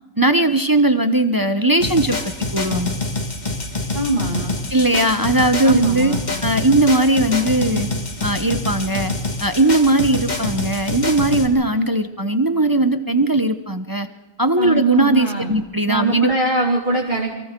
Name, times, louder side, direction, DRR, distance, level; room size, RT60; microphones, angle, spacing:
voice 1, 0.2-2.2 2.5-3.0 4.7-6.2 6.4-7.9 8.2-9.1 9.4-14.1 14.4-16.3, right 2 dB, 20° right, 8 dB, 0.8 m, -18 dB
sound 1, 1.8-11.5, left 2 dB, 35° left, 2.0 m, -26 dB
voice 2, 3.9-4.6 5.6-6.3 14.6-15.5 15.9-17.4, right 2 dB, 40° right, -3 dB, 2.6 m, -22 dB
28.5 x 24.0 x 3.8 m, 1.2 s
omnidirectional pair, 1.3 m